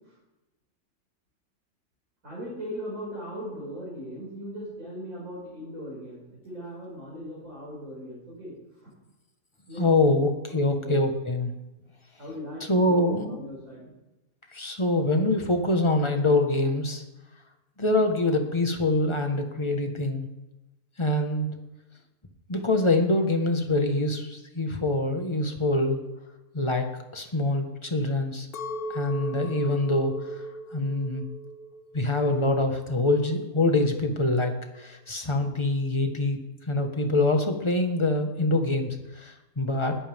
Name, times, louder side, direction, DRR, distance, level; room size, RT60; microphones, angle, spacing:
voice 1, 2.2-8.5 8.8-8.9 9.7-10.1 10.5-11.0 12.2-13.9, equal, 65° right, -9 dB, 6.6 m, -38 dB
voice 2, 9.8-11.5 12.7-13.4 14.5-17.0 17.8-20.3 21.0-21.5 22.5-26.0 26.5-26.9 27.1-28.5 28.9-30.2 30.7-31.2 31.9-36.4 36.7-40.0, left 2 dB, 20° left, 5 dB, 1.4 m, -25 dB
Chink clink, 28.5-32.8 33.3-33.9, right 1 dB, 80° left, 1.4 m, -37 dB
20.5 x 13.5 x 3.6 m, 1.0 s
omnidirectional pair, 1.6 m